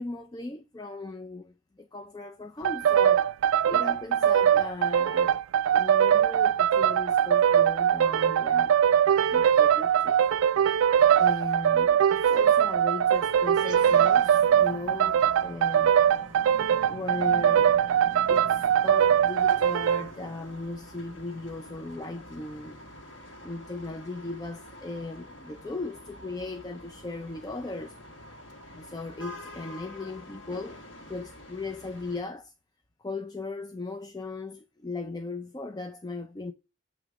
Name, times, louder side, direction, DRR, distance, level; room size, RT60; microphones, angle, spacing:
voice 1, 0.0-3.3 3.7-5.3 5.7-8.8 9.2-10.2 10.5-16.0 16.9-17.7 18.3-22.8 23.4-28.0 28.7-32.5 33.0-36.5, left 3 dB, 20° left, 0.4 m, -38 dB
sound 1, 2.6-20.1, right 9 dB, 90° right, 0.3 m, -22 dB
sound 2, 13.1-32.2, left 1 dB, 75° left, 1.7 m, -48 dB
sound 3, 13.5-20.2, right 2 dB, 20° right, 1.2 m, -46 dB
8.2 x 3.0 x 6.1 m
head